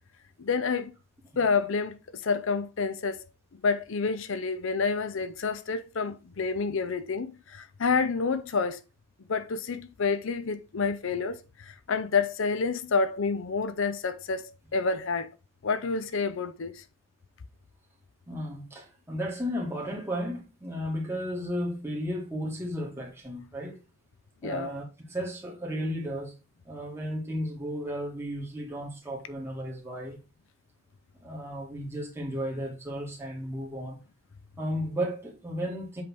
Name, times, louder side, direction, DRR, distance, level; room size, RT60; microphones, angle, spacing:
voice 1, 0.4-0.9 1.4-3.3 3.6-8.8 9.3-15.3 15.6-16.8 24.4-24.7, left 4 dB, 60° left, 0.5 m, -29 dB
voice 2, 18.3-23.8 24.4-26.3 26.6-30.2 31.2-34.0 34.6-36.0, equal, 10° right, 1.8 m, -34 dB
7.8 x 3.5 x 4.5 m
head